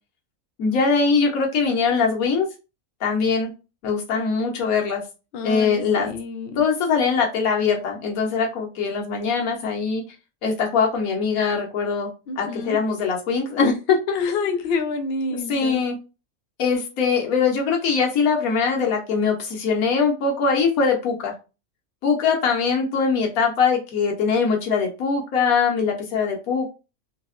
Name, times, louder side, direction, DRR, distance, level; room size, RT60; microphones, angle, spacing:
voice 1, 0.6-2.5 3.0-3.5 3.8-5.0 5.4-6.1 6.6-10.0 10.4-12.1 12.4-14.0 15.3-16.0 16.6-21.3 22.0-26.7, left 5 dB, 85° left, 1.3 m, -22 dB
voice 2, 5.3-6.6 12.3-12.8 14.1-15.8, left 4 dB, 60° left, 0.7 m, -28 dB
3.9 x 2.1 x 2.4 m
omnidirectional pair, 1.5 m